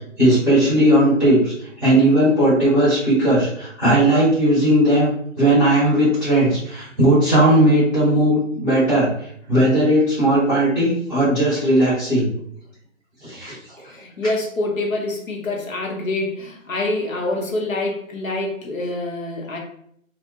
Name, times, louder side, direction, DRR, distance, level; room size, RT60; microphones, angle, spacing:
voice 1, 0.2-5.1 5.4-9.1 9.5-12.3 13.2-13.5, right 1 dB, ahead, -13 dB, 0.8 m, -17 dB
voice 2, 13.8-19.6, left 2 dB, 75° left, 0 dB, 0.8 m, -26 dB
2.4 x 2.1 x 2.5 m, 0.67 s
hypercardioid pair, 160°, 40 cm